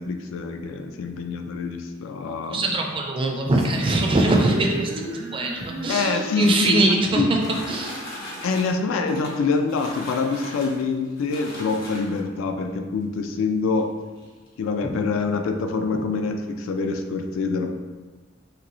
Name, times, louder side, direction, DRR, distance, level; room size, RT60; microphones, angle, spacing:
voice 1, 0.0-2.7 5.9-6.8 7.1-7.3 8.4-13.9 14.6-17.7, left 4 dB, 75° left, 5 dB, 0.3 m, -25 dB
voice 2, 2.5-7.4 7.7-8.1 14.8-15.0 15.9-16.0, right 2 dB, 25° right, 1 dB, 0.3 m, -23 dB
sound 1, 3.5-8.9, right 2 dB, 90° right, 0.5 m, -35 dB
sound 2, 6.2-12.4 13.2-13.3 13.7-13.8 14.2-14.5, left 1 dB, 50° left, 1.0 m, -39 dB
3.0 x 2.9 x 2.6 m, 1.3 s
head